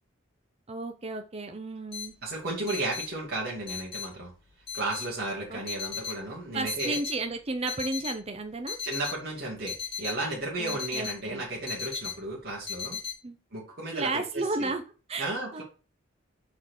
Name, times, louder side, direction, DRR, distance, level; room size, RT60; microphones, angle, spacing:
voice 1, 0.7-2.1 5.5-5.6 6.5-8.8 10.6-11.4 13.2-13.4 13.9-14.8 15.1-15.6, right 3 dB, 30° right, 6 dB, 0.7 m, -33 dB
sound 1, 1.9-13.1, left 7 dB, 30° left, 3.3 m, -37 dB
voice 2, 2.2-4.3 4.7-7.0 8.8-13.0 13.5-14.7 15.2-15.6, right 2 dB, 50° right, -5 dB, 2.4 m, -34 dB
6.1 x 4.8 x 4.6 m, 0.34 s
head